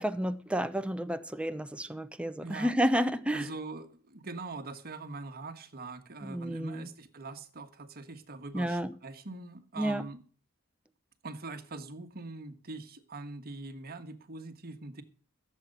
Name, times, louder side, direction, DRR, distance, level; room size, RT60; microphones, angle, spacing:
voice 1, 0.0-3.5 6.2-6.9 8.5-8.9 9.8-10.0, equal, 5° right, 0.7 m, -31 dB
voice 2, 2.4-2.7 3.3-10.2 11.2-15.0, right 3 dB, 45° right, 1.4 m, -43 dB
15.0 x 7.6 x 6.7 m
head